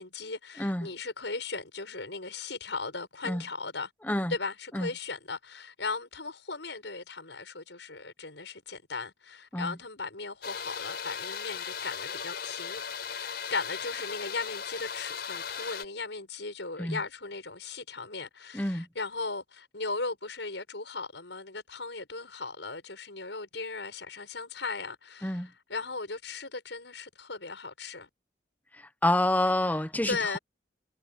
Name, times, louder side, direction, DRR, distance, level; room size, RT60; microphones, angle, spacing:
voice 1, 0.0-3.9 4.3-28.1 29.6-29.8 30.1-30.4, left 4 dB, 85° left, 6.5 m, -37 dB
sound 1, 10.4-15.8, left 7 dB, 65° left, 5.3 m, -37 dB
voice 2, 18.5-18.9 25.2-25.5 28.7-30.4, left 1 dB, 10° left, 1.1 m, -28 dB
head